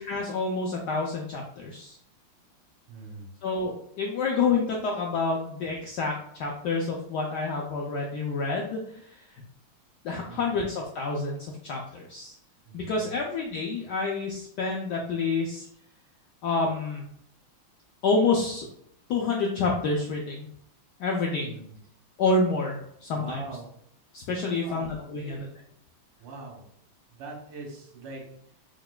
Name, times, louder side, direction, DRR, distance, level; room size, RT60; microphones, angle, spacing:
voice 1, 0.0-2.0 3.4-9.4 10.0-12.3 12.7-15.7 16.4-17.0 18.0-18.7 19.1-20.5 21.0-21.5 22.2-23.5 24.1-25.5, left 3 dB, 85° left, -1 dB, 0.9 m, -28 dB
voice 2, 2.9-3.3 10.2-10.5 12.7-13.2 21.4-21.7 23.1-23.7 24.5-25.4 26.2-26.6 27.2-28.2, right 3 dB, 75° right, -1 dB, 1.9 m, -42 dB
4.9 x 3.1 x 2.2 m, 0.67 s
omnidirectional pair, 2.4 m